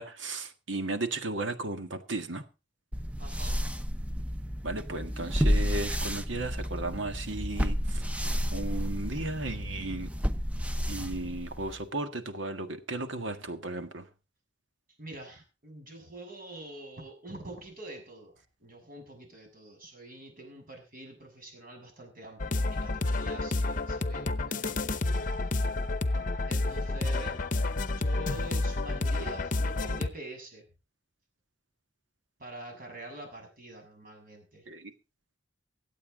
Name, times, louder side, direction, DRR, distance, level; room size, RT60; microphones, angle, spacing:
voice 1, 0.0-2.4 4.6-8.0 8.5-10.1 10.9-14.0 34.7-34.9, right 2 dB, 90° right, 1.7 m, -35 dB
sound 1, 2.9-11.8, equal, 5° right, 0.7 m, -31 dB
voice 2, 3.2-3.6 15.0-18.3 18.6-24.9 26.5-30.6 32.4-34.6, right 2 dB, 50° right, 6.9 m, -45 dB
sound 2, 22.4-30.1, left 2 dB, 45° left, 0.8 m, -30 dB
24.0 x 8.4 x 3.8 m
head